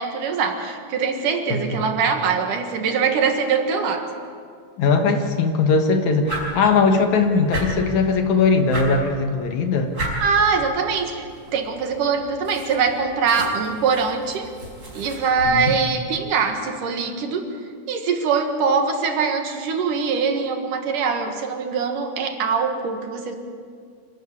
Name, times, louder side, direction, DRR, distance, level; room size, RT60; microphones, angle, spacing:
voice 1, 0.0-4.1 10.2-11.3 11.5-14.5 14.9-17.5 17.9-23.4, right 5 dB, 75° right, 4 dB, 3.3 m, -23 dB
voice 2, 4.8-9.9 15.5-15.7, left 4 dB, 65° left, 5 dB, 2.7 m, -19 dB
sound 1, 6.2-15.7, right 1 dB, 30° right, 5.7 m, -35 dB
26.5 x 13.0 x 8.4 m, 2.2 s
omnidirectional pair, 3.7 m